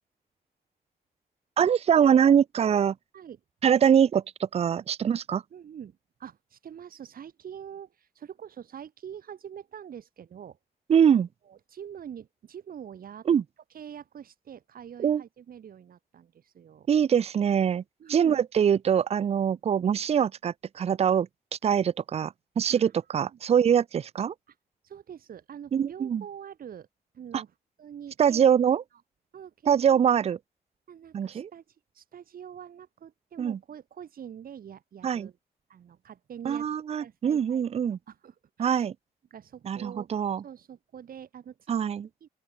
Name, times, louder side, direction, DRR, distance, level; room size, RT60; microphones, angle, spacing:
voice 1, 1.6-2.9 3.6-5.4 10.9-11.3 13.3-13.4 15.0-15.2 16.9-17.8 18.1-21.3 21.6-24.3 25.7-26.2 27.3-27.4 28.2-28.8 29.7-30.4 31.1-31.5 33.4-33.6 35.0-35.3 36.5-38.0 38.6-38.9 39.7-40.4 41.7-42.1, right 8 dB, 40° right, 0.5 m, -23 dB
voice 2, 5.5-10.6 11.1-13.3 13.7-16.9 18.0-18.4 19.5-19.6 22.7-22.9 23.3-23.4 24.5-24.6 24.8-26.9 27.1-28.5 29.3-30.0 30.9-35.4 35.7-36.7 37.0-38.9 39.3-40.1 40.4-41.7 42.2-42.3, right 8 dB, 65° right, 6.0 m, -45 dB
open air
wide cardioid pair, 165°, 16 cm